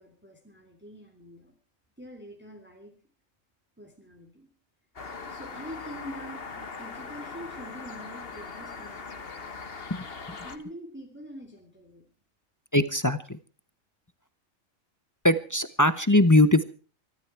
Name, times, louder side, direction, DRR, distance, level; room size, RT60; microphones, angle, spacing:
voice 1, 0.0-1.5 2.0-2.9 3.8-4.5 5.3-9.2 10.3-12.0, equal, 10° right, 2 dB, 3.2 m, -45 dB
sound 1, 5.0-10.6, left 4 dB, 45° left, 1.6 m, -40 dB
voice 2, 9.9-10.4 12.7-13.4 15.2-16.6, left 1 dB, 20° left, 13 dB, 0.7 m, -21 dB
23.5 x 12.5 x 4.6 m, 0.38 s
omnidirectional pair, 1.4 m